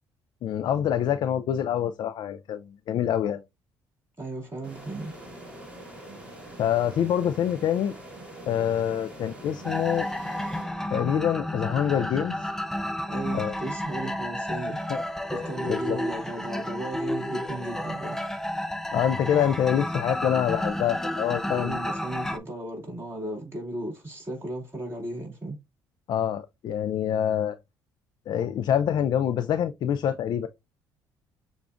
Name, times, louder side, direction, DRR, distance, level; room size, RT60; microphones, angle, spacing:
voice 1, 0.4-3.4 6.6-7.9 8.5-10.1 10.9-12.5 13.3-13.6 14.9-15.0 15.7-16.0 18.9-21.8 26.1-27.6 28.3-30.5, left 9 dB, 60° left, 0.4 m, -26 dB
voice 2, 4.2-5.1 13.1-14.8 15.3-18.2 21.5-25.6, right 1 dB, 30° right, 2.6 m, -35 dB
sound 1, 4.6-11.3, right 1 dB, 10° right, 1.7 m, -44 dB
sound 2, 9.6-22.4, left 1 dB, 5° left, 0.5 m, -31 dB
6.8 x 2.4 x 2.5 m
supercardioid pair, 75°, 9 cm